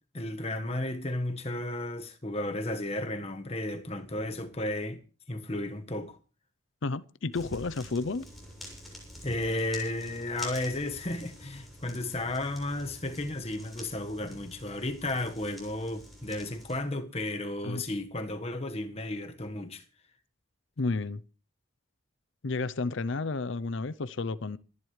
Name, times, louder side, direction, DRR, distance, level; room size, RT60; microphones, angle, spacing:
voice 1, 0.1-5.0 5.3-6.2 9.2-19.8, left 1 dB, 30° left, 1.4 m, -33 dB
voice 2, 6.8-8.3 17.6-17.8 20.8-21.2 22.4-24.6, left 3 dB, 65° left, 0.6 m, -31 dB
sound 1, 7.3-16.8, equal, ahead, 7.3 m, -47 dB
27.5 x 11.0 x 3.3 m
head